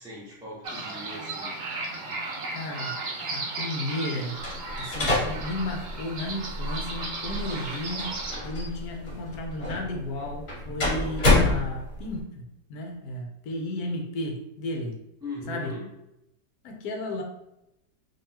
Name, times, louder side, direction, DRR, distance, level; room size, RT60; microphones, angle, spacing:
voice 1, 0.0-1.5 15.2-15.9, left 1 dB, 5° right, -7 dB, 0.4 m, -39 dB
sound 1, 0.6-8.4, right 3 dB, 60° right, 0.6 m, -35 dB
voice 2, 2.5-2.9 3.3-4.3 4.8-8.2 8.4-15.0 15.5-15.7 16.6-17.2, left 1 dB, 70° left, 2 dB, 1.1 m, -34 dB
sound 2, 4.4-12.2, left 2 dB, 45° left, 1.6 m, -28 dB
3.8 x 2.9 x 2.8 m, 0.87 s
omnidirectional pair, 1.8 m